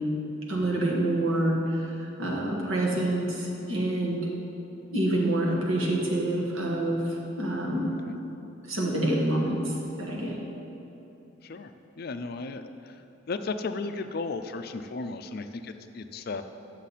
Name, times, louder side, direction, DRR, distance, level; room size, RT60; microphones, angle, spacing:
voice 1, 0.5-4.3 4.9-7.9 8.7-9.7 10.0-10.4, right 1 dB, 75° right, -2 dB, 1.4 m, -27 dB
voice 2, 11.4-13.0 13.3-16.4, left 3 dB, 45° left, 9 dB, 0.4 m, -35 dB
9.8 x 6.4 x 4.1 m, 2.9 s
head